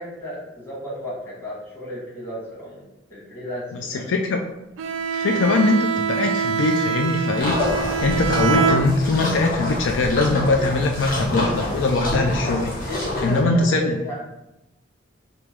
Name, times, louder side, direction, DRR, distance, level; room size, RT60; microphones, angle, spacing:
voice 1, 0.0-2.8 3.1-4.1 12.8-14.2, equal, 10° left, -7 dB, 1.3 m, -33 dB
voice 2, 4.1-4.4 5.1-7.6 8.0-12.7 13.2-14.0, left 3 dB, 70° left, 3 dB, 0.4 m, -21 dB
Bowed string instrument, 4.8-9.4, right 7 dB, 75° right, 0.3 m, -25 dB
sound 1, 7.4-13.4, left 1 dB, 50° left, 1.2 m, -26 dB
3.2 x 3.0 x 3.5 m, 0.92 s
head